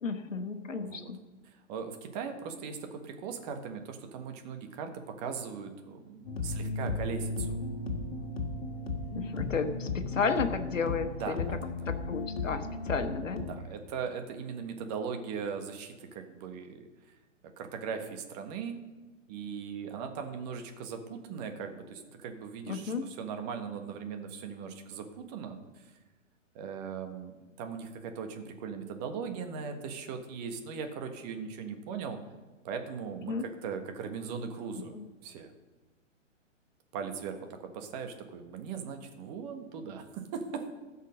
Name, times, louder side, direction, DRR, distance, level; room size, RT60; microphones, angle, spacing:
voice 1, 0.0-1.2 9.1-11.6 11.9-13.4 22.7-23.1 33.3-33.5 34.9-35.0, left 5 dB, 80° left, 8 dB, 1.4 m, -33 dB
voice 2, 1.7-4.9 5.2-7.5 11.2-11.7 13.5-16.9 17.6-18.8 19.3-25.6 26.5-32.2 32.6-34.9 35.2-35.5 36.9-40.8, right 6 dB, 30° right, 6 dB, 1.5 m, -39 dB
sound 1, 6.3-13.4, left 3 dB, 50° left, 2.1 m, -35 dB
15.0 x 5.7 x 6.4 m, 1.2 s
figure-of-eight pair, 120°, 38 cm